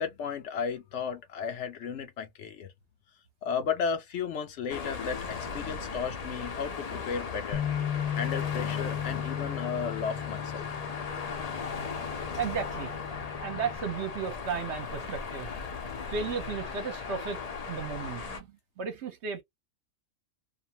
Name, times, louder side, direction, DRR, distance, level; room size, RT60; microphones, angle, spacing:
voice 1, 0.0-2.7 3.4-7.6 8.1-10.7, left 6 dB, 65° left, 0.8 m, -34 dB
sound 1, 4.7-18.4, left 5 dB, 45° left, 0.5 m, -37 dB
Bass guitar, 7.5-13.8, left 9 dB, 90° left, 1.1 m, -36 dB
voice 2, 12.4-12.9 13.4-15.5 16.1-17.4 17.7-18.5 18.8-19.4, right 6 dB, 60° right, 0.9 m, -34 dB
2.5 x 2.2 x 2.7 m
omnidirectional pair, 1.4 m